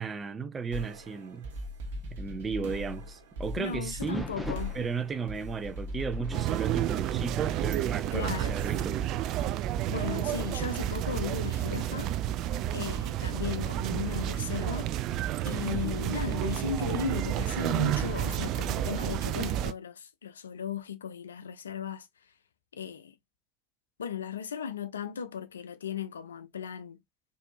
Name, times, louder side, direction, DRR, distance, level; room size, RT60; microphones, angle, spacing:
voice 1, 0.0-1.5 2.1-4.3 4.7-9.4, right 5 dB, 25° right, 0.7 m, -35 dB
sound 1, 0.7-10.1, left 1 dB, 70° right, 1.0 m, -41 dB
voice 2, 3.6-4.7 8.1-8.5 9.9-12.1 12.7-14.9 15.4-22.1 22.7-23.1 24.0-27.0, left 8 dB, 80° left, 0.4 m, -36 dB
sound 2, 4.0-8.1 8.5-8.8 9.4-9.5 10.3-13.0 14.8-15.3, equal, ahead, 1.0 m, -45 dB
sound 3, 6.3-19.7, right 12 dB, 50° right, 0.3 m, -30 dB
4.3 x 2.7 x 2.5 m
figure-of-eight pair, 70°, 0 cm